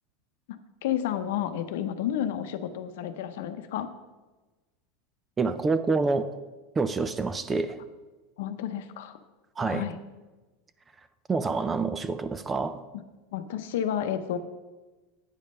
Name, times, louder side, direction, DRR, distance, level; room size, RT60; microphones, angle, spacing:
voice 1, 0.5-3.9 8.4-9.2 9.7-10.0 12.9-13.0 13.3-14.4, left 10 dB, 75° left, 0.7 m, -31 dB
voice 2, 5.4-6.3 6.8-7.8 9.6-9.8 11.3-12.8, right 4 dB, 15° right, 0.4 m, -27 dB
9.0 x 5.3 x 5.4 m
supercardioid pair, 150°, 0 cm